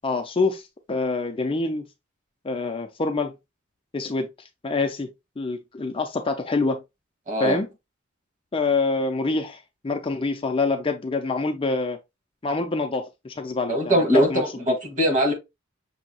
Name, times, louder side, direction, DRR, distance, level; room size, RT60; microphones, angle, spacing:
voice 1, 0.0-1.8 2.4-3.3 3.9-4.3 4.6-5.1 5.4-6.8 7.4-7.7 8.5-12.0 12.4-14.4 14.7-14.8, left 3 dB, 25° left, 0.5 m, -26 dB
voice 2, 7.3-7.6 13.7-15.3, equal, 40° right, 1.8 m, -21 dB
6.1 x 2.8 x 2.8 m
head